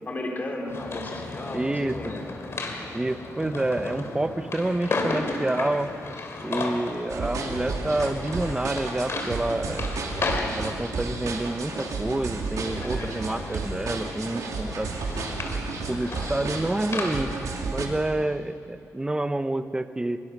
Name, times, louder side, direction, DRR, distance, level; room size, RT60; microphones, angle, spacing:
voice 1, 0.1-2.2 16.1-16.5, left 1 dB, 30° left, 1 dB, 3.8 m, -35 dB
sound 1, 0.7-17.5, left 3 dB, 50° left, 3.0 m, -34 dB
voice 2, 1.5-2.1 2.9-5.9 6.4-10.3 10.6-14.9 15.9-17.3 17.6-20.2, right 2 dB, 15° right, 10 dB, 0.9 m, -28 dB
sound 2, 7.1-17.9, right 4 dB, 75° right, 2.9 m, -32 dB
24.0 x 23.0 x 6.1 m, 2.5 s
wide cardioid pair, 120°, 6 cm